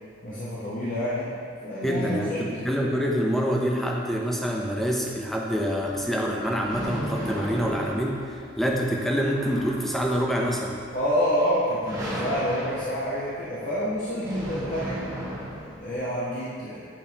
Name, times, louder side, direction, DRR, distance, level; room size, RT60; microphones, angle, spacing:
voice 1, 0.2-1.3 1.6-2.5 10.9-15.0 15.8-16.9, equal, 45° left, -9 dB, 0.9 m, -28 dB
voice 2, 1.8-10.8, equal, ahead, -2 dB, 0.6 m, -26 dB
sound 1, 5.5-16.0, equal, 20° right, 1.3 m, -36 dB
8.4 x 5.4 x 2.9 m, 2.3 s
head